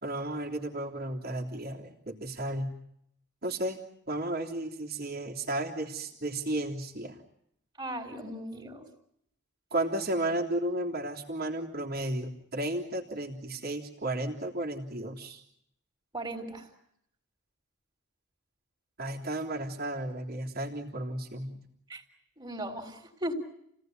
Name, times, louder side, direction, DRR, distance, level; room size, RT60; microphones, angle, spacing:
voice 1, 0.0-2.7 3.4-3.8 4.1-7.2 9.7-15.4 19.0-21.6, right 1 dB, 50° right, 0 dB, 3.3 m, -33 dB
voice 2, 7.8-8.9 16.1-16.7 21.9-22.0 22.4-23.3, right 1 dB, 20° right, 6 dB, 4.0 m, -37 dB
29.5 x 18.0 x 9.4 m, 0.76 s
head